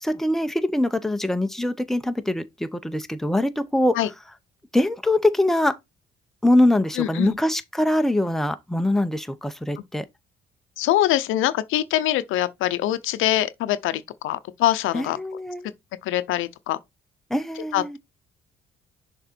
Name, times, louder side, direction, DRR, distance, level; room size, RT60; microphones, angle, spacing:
voice 1, 0.0-4.1 4.7-5.8 6.4-10.1 14.9-15.7 17.3-18.0, left 1 dB, ahead, 0.8 m, -23 dB
voice 2, 7.0-7.4 10.8-15.2 16.0-16.8 17.7-18.0, left 13 dB, 90° left, 0.6 m, -23 dB
6.6 x 3.7 x 4.4 m
cardioid pair, 90°, 20 cm